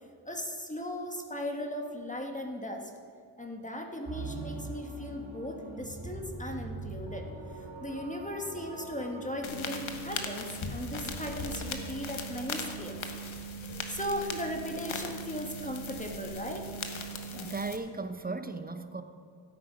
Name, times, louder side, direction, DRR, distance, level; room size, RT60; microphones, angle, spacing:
voice 1, 0.2-2.9 3.4-7.3 7.5-13.0 13.4-13.5 13.9-16.7, left 1 dB, 15° left, 2 dB, 1.5 m, -37 dB
sound 1, 4.1-9.3, right 2 dB, 70° right, 2.7 m, -42 dB
sound 2, 9.4-17.8, left 1 dB, 70° left, 1.3 m, -38 dB
voice 2, 17.3-19.0, right 3 dB, 20° right, 9 dB, 0.9 m, -36 dB
14.5 x 8.6 x 5.2 m, 2.3 s
cardioid pair, 50°, 48 cm